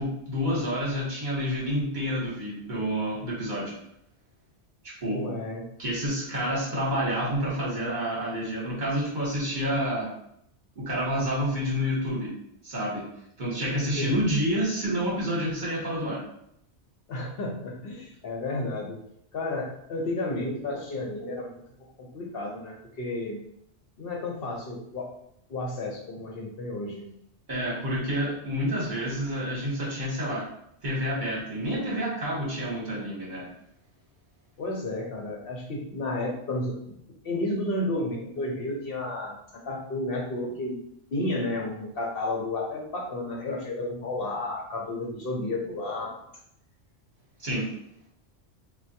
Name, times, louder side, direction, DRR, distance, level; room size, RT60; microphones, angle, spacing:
voice 1, 0.0-3.7 5.0-5.2 5.8-10.1 10.8-12.3 12.6-13.0 13.4-16.2 27.5-30.4 30.8-33.4 47.4-47.7, equal, 45° right, -5 dB, 1.0 m, -28 dB
voice 2, 5.0-5.6 14.0-14.2 17.1-19.0 19.3-21.6 22.0-23.4 24.0-25.1 25.5-27.0 34.6-37.0 37.2-39.4 39.6-40.8 41.1-46.2, left 2 dB, 60° left, -1 dB, 0.8 m, -32 dB
3.3 x 2.2 x 2.7 m, 0.73 s
omnidirectional pair, 1.2 m